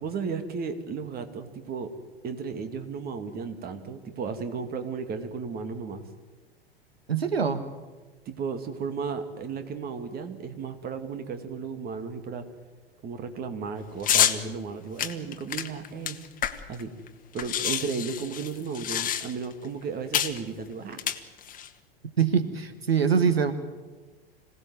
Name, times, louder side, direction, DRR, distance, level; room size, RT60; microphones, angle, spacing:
voice 1, 0.0-1.9 2.2-6.0 8.3-12.4 13.0-16.2 16.7-16.9 17.3-21.0, right 5 dB, 30° right, 8 dB, 2.6 m, -34 dB
voice 2, 7.1-7.6 22.2-23.5, right 6 dB, 80° right, 10 dB, 1.5 m, -23 dB
sound 1, 14.0-14.4 15.0-16.8 17.1-17.2 17.4-19.5 20.1-20.4 20.9-21.7, left 10 dB, 25° left, 1.7 m, -27 dB
25.5 x 17.5 x 9.3 m, 1.3 s
figure-of-eight pair, 90°, 30 cm